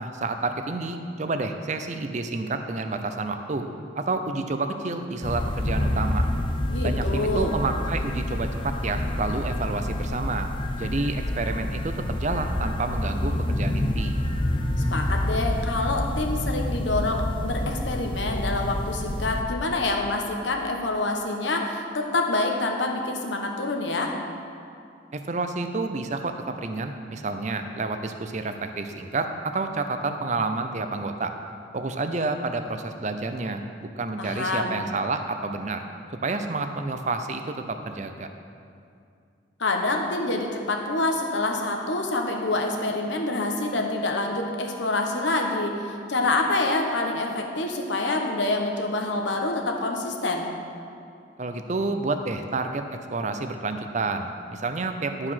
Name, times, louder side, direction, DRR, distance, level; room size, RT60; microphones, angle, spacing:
voice 1, 0.0-3.7 4.0-6.2 6.8-10.5 10.8-14.2 25.1-31.3 31.7-35.8 36.2-38.3 51.4-52.8 53.1-55.3, right 3 dB, 40° right, 7 dB, 0.5 m, -29 dB
sound 1, 5.2-19.4, left 1 dB, 25° left, 0.5 m, -28 dB
voice 2, 6.7-7.5 14.8-24.1 34.2-34.8 39.6-50.5, left 2 dB, 75° left, 2 dB, 1.1 m, -26 dB
11.5 x 4.9 x 5.6 m, 2.4 s
head